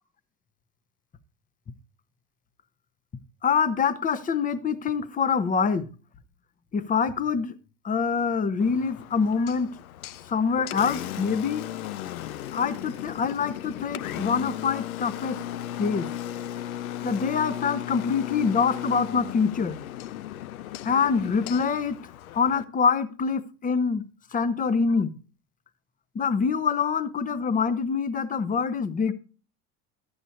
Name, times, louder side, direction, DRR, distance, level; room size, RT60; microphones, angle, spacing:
voice 1, 3.4-5.9 6.7-7.5 7.8-9.7 10.3-11.6 12.5-15.4 15.8-16.1 17.0-19.8 20.8-22.0 22.3-25.1 26.1-29.1, left 5 dB, 20° left, 0.7 m, -25 dB
Engine, 8.6-22.6, left 12 dB, 70° left, 0.6 m, -36 dB
12.0 x 7.9 x 2.7 m
figure-of-eight pair, 65°, 44 cm